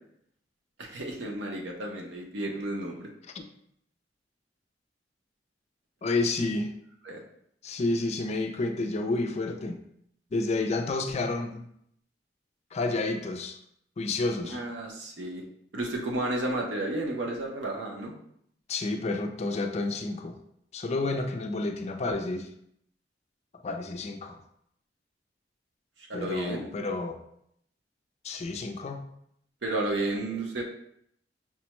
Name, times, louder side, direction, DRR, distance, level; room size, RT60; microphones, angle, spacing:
voice 1, 0.8-3.1 7.0-7.2 14.5-15.4 15.7-18.1 26.1-26.7 29.6-30.6, right 1 dB, 80° right, 0 dB, 0.8 m, -32 dB
voice 2, 6.0-6.7 7.6-9.8 10.3-11.6 12.7-13.6 14.0-14.6 18.7-20.4 20.7-22.5 23.5-24.4 26.1-27.2 28.2-29.0, left 2 dB, 40° left, 5 dB, 0.4 m, -30 dB
5.8 x 2.2 x 3.0 m, 0.72 s
head